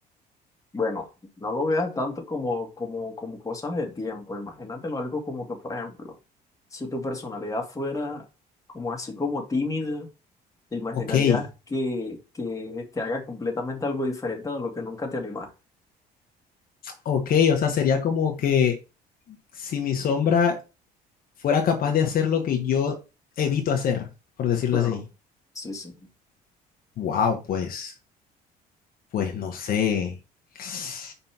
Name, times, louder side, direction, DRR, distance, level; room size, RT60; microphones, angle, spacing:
voice 1, 0.7-1.1 1.4-6.1 6.7-8.3 8.7-10.1 10.7-15.5 24.7-25.0 25.6-25.9, left 2 dB, 20° left, 2.1 m, -30 dB
voice 2, 10.9-11.4 16.8-18.8 19.5-20.6 21.4-23.0 23.4-24.1 24.4-25.0 27.0-27.9 29.1-30.2 30.5-31.1, left 7 dB, 60° left, 1.4 m, -23 dB
5.5 x 4.3 x 5.9 m
cardioid pair, 110°, 17 cm